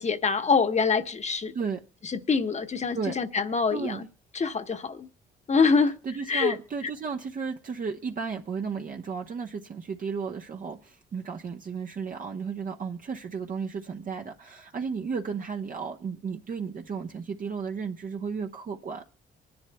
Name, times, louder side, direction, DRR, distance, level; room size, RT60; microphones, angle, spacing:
voice 1, 0.0-1.5 2.3-4.0 4.3-5.1 5.5-6.0 6.3-6.5, left 5 dB, 35° left, 1.1 m, -25 dB
voice 2, 6.0-19.0, right 5 dB, 45° right, 0.9 m, -34 dB
26.0 x 10.5 x 2.2 m
cardioid pair, 90°, 20 cm